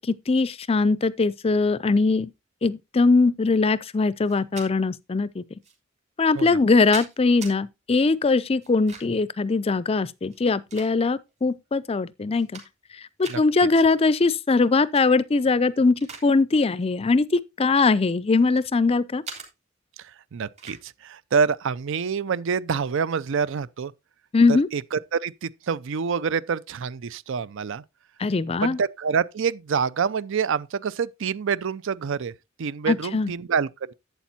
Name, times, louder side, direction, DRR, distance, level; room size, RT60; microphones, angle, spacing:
voice 1, 0.3-2.3 2.6-5.4 6.2-12.6 13.2-19.2 24.3-24.7 28.2-28.8 32.9-33.3, left 3 dB, 30° left, 0.4 m, -21 dB
sound 1, 4.3-4.7 5.6-5.7 6.5-7.6 8.6-9.3 10.2-11.3 11.8-11.9 12.3-12.9 13.2-13.4 14.8-15.1 15.5-16.3 16.6-16.8 17.6-18.7 19.2-19.5 20.6-20.8, right 4 dB, 35° right, 2.9 m, -41 dB
voice 2, 13.3-13.7 20.3-23.9 24.5-27.8 28.6-32.3 32.6-33.9, right 6 dB, 65° right, 0.5 m, -27 dB
11.5 x 8.2 x 2.8 m
head